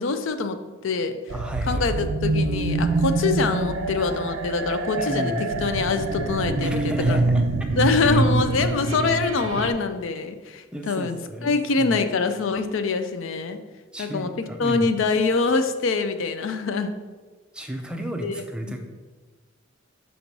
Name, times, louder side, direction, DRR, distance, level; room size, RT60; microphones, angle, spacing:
voice 1, 0.0-1.2 1.7-5.3 5.6-7.2 7.8-11.2 11.4-13.6 14.0-16.9 18.2-18.8, left 4 dB, 65° left, 9 dB, 0.4 m, -24 dB
voice 2, 1.3-1.8 5.0-5.4 6.6-7.4 8.0-8.2 10.7-12.0 13.9-14.9 17.5-18.8, right 1 dB, 5° right, 3 dB, 0.5 m, -33 dB
sound 1, 1.3-9.7, right 2 dB, 75° right, 0.4 m, -25 dB
6.3 x 3.0 x 5.2 m, 1.3 s
head